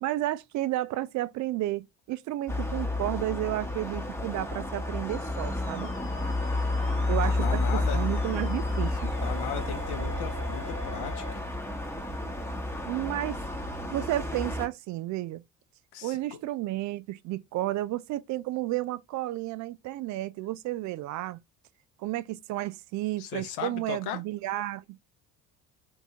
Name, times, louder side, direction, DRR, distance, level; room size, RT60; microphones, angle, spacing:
voice 1, 0.0-5.9 7.1-9.1 12.8-13.4 13.9-15.4 16.0-21.4 22.0-25.0, right 15 dB, 45° right, 0.4 m, -32 dB
sound 1, 2.5-14.7, left 2 dB, 5° left, 0.9 m, -31 dB
Musical instrument, 5.1-11.4, left 3 dB, 30° left, 1.2 m, -45 dB
voice 2, 7.2-8.0 9.2-11.5 15.9-16.2 23.2-24.2, left 9 dB, 60° left, 0.9 m, -37 dB
3.6 x 2.7 x 2.7 m
hypercardioid pair, 55°, 44 cm